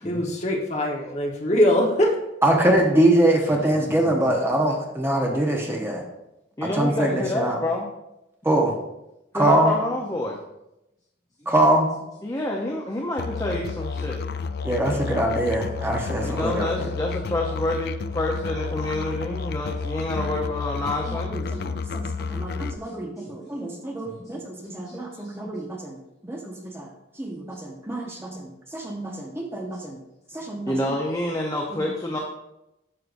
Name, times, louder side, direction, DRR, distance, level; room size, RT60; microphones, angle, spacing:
voice 1, 0.0-2.1, left 1 dB, 35° left, -1 dB, 1.2 m, -22 dB
voice 2, 2.4-6.0 6.6-7.6 8.4-8.8 9.3-9.7 11.5-11.9 14.6-16.9 21.1-26.9 27.2-30.0 30.3-30.7 31.7-31.9, right 1 dB, 10° right, 0 dB, 0.9 m, -24 dB
voice 3, 4.0-4.4 6.6-7.9 9.3-10.4 11.4-11.5 12.2-14.2 16.2-21.6 22.8-22.9 23.2-23.4 24.0-24.3 24.6-25.4 28.1-28.2 30.5-32.2, left 1 dB, 20° left, -1 dB, 0.7 m, -28 dB
Musical instrument, 13.2-22.8, left 5 dB, 55° left, 0.3 m, -31 dB
11.0 x 6.6 x 2.6 m, 0.91 s
head